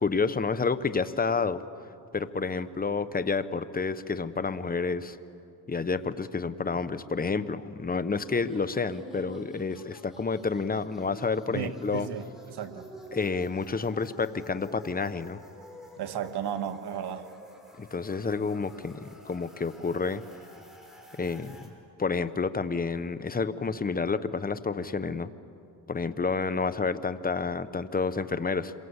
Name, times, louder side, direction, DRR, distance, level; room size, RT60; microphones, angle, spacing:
voice 1, 0.0-1.6 2.1-5.2 5.7-12.1 13.1-15.4 17.8-20.2 21.2-21.7 22.0-25.3 25.9-28.7, left 4 dB, 20° left, 13 dB, 1.0 m, -29 dB
sound 1, 8.1-21.7, equal, ahead, 5.2 m, -49 dB
voice 2, 11.5-12.9 16.0-17.3, right 8 dB, 70° right, 8 dB, 1.6 m, -34 dB
27.0 x 23.0 x 8.1 m, 2.6 s
cardioid pair, 95°, 41 cm